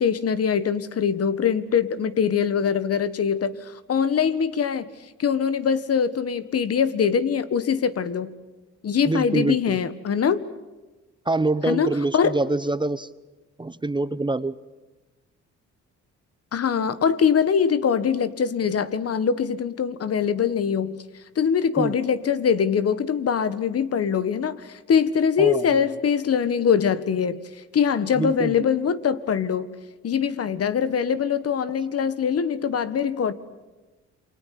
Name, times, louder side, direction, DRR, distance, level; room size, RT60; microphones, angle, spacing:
voice 1, 0.0-4.9 5.2-8.3 8.8-10.4 11.7-12.4 16.5-21.0 21.4-27.4 27.7-29.7 30.0-33.3, left 7 dB, 50° left, 14 dB, 1.7 m, -23 dB
voice 2, 9.0-9.8 11.2-13.1 13.6-14.5 21.8-22.0 25.4-25.6 28.1-28.7, right 2 dB, 15° right, 15 dB, 0.9 m, -25 dB
28.5 x 23.5 x 8.5 m, 1.1 s
cardioid pair, 90°, 30 cm